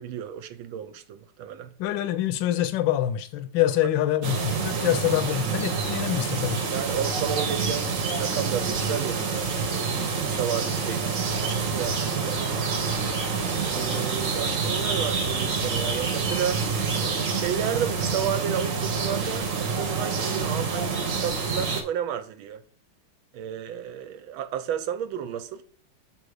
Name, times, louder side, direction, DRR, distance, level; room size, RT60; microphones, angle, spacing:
voice 1, 0.0-1.7 4.7-5.0 6.7-12.6 13.6-16.7 17.3-22.6 23.3-25.6, right 9 dB, 75° right, 1.4 m, -32 dB
voice 2, 1.8-6.7, left 12 dB, 70° left, 1.3 m, -25 dB
sound 1, 4.2-21.8, right 5 dB, 50° right, 1.1 m, -27 dB
6.9 x 3.9 x 4.8 m
omnidirectional pair, 2.3 m